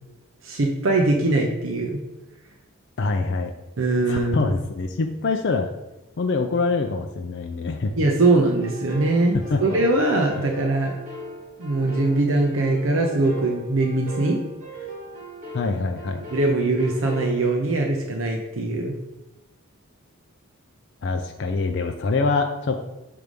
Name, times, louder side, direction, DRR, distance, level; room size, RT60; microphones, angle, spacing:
voice 1, 0.4-2.0 3.8-4.5 8.0-10.9 11.6-14.4 16.3-18.9, right 2 dB, 65° right, 1 dB, 0.7 m, -21 dB
voice 2, 3.0-3.5 4.1-5.7 6.2-7.9 9.3-9.6 15.5-16.2 21.0-22.8, left 3 dB, 50° left, 4 dB, 0.4 m, -24 dB
sound 1, 8.6-17.3, right 2 dB, 30° right, 2.0 m, -38 dB
6.1 x 3.4 x 5.2 m, 1.0 s
head